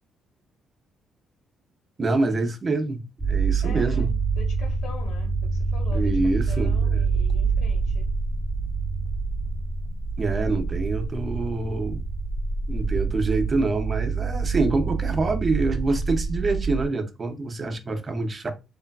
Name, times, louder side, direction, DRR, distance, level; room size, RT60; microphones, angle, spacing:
voice 1, 2.0-4.1 5.9-7.0 10.2-12.0 12.7-18.5, right 3 dB, 35° right, 0.5 m, -26 dB
sound 1, 3.2-16.9, right 4 dB, ahead, 0.7 m, -26 dB
voice 2, 3.6-8.1, left 3 dB, 75° left, 1.0 m, -43 dB
3.2 x 2.2 x 2.3 m
cardioid pair, 90°, 0 cm